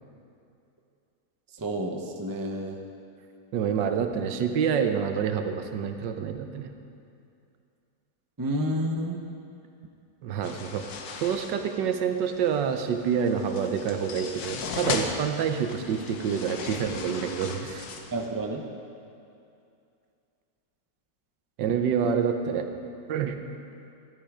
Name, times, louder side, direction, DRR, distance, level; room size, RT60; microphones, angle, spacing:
voice 1, 1.5-2.8 8.4-9.3 14.8-14.9 18.1-18.6, right 1 dB, 20° right, 2 dB, 0.6 m, -30 dB
voice 2, 3.5-6.7 10.2-17.9 21.6-22.7 23.1-23.3, right 7 dB, 85° right, 7 dB, 1.5 m, -27 dB
sound 1, 10.4-18.3, left 5 dB, 65° left, 1.4 m, -37 dB
13.0 x 11.5 x 5.0 m, 2.6 s
omnidirectional pair, 1.9 m